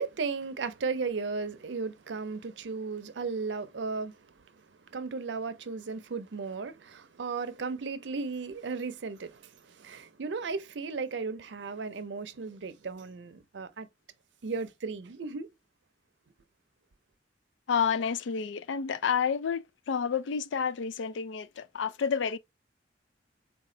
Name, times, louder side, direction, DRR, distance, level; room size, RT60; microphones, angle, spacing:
voice 1, 0.0-13.9 14.4-15.5, right 4 dB, 75° right, 0.5 m, -35 dB
voice 2, 17.7-22.4, left 6 dB, 85° left, 0.4 m, -30 dB
4.2 x 2.3 x 3.7 m
head